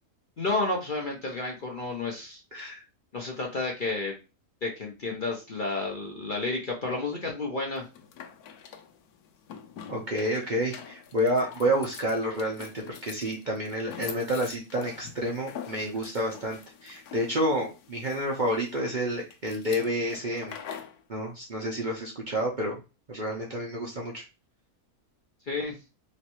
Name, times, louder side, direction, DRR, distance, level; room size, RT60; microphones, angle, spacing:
voice 1, 0.4-2.4 3.1-4.2 4.6-7.8 25.5-25.8, left 3 dB, 45° left, 0 dB, 0.8 m, -31 dB
voice 2, 2.5-2.8 9.9-12.7 13.0-20.6 21.1-22.8 23.1-24.2, equal, 45° right, -1 dB, 0.7 m, -29 dB
sound 1, 7.8-21.0, left 8 dB, 90° left, 1.1 m, -45 dB
3.2 x 3.2 x 2.9 m, 0.30 s
omnidirectional pair, 1.6 m